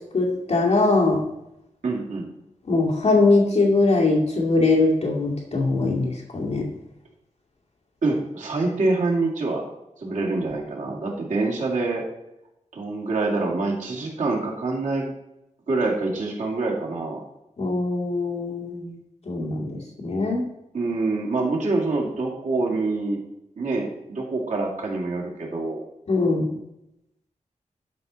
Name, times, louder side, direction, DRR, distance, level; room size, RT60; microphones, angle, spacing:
voice 1, 0.1-1.2 2.7-6.7 17.6-19.0 19.3-20.5 26.1-26.6, left 3 dB, 55° left, -3 dB, 2.2 m, -21 dB
voice 2, 1.8-2.3 8.0-9.6 10.0-12.1 12.7-15.1 15.7-17.2 20.7-23.2 23.6-25.8, right 3 dB, 75° right, -3 dB, 2.3 m, -26 dB
12.0 x 5.6 x 4.0 m, 0.86 s
wide cardioid pair, 165°, 13 cm